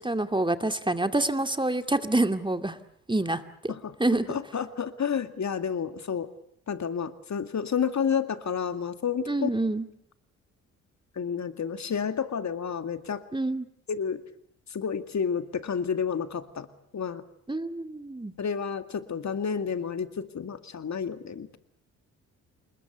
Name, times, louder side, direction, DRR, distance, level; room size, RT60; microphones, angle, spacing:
voice 1, 0.0-2.8 3.1-3.7 4.0-4.4 9.3-9.9 13.3-13.7 17.5-18.3, right 2 dB, 10° right, 8 dB, 2.3 m, -27 dB
voice 2, 4.3-6.3 6.7-9.5 11.2-13.2 13.9-14.2 14.7-16.7 16.9-17.2 18.4-21.6, left 7 dB, 45° left, 10 dB, 2.2 m, -30 dB
28.0 x 21.5 x 8.2 m, 0.68 s
hypercardioid pair, 50°, 40 cm